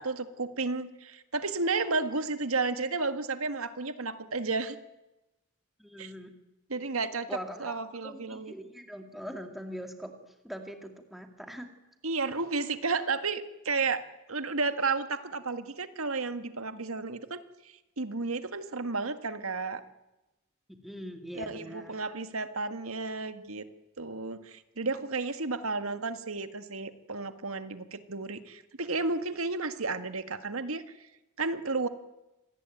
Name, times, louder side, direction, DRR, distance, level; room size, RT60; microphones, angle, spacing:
voice 1, 0.0-4.8 6.0-6.1 6.7-8.5 12.0-14.0 14.3-17.4 18.0-19.8 21.3-23.7 24.0-30.8 31.4-31.9, right 3 dB, 80° right, 9 dB, 1.8 m, -32 dB
voice 2, 5.8-6.3 7.3-7.8 8.0-10.1 10.4-11.7 20.8-22.0, equal, ahead, 5 dB, 2.4 m, -41 dB
26.0 x 19.0 x 9.3 m, 0.99 s
head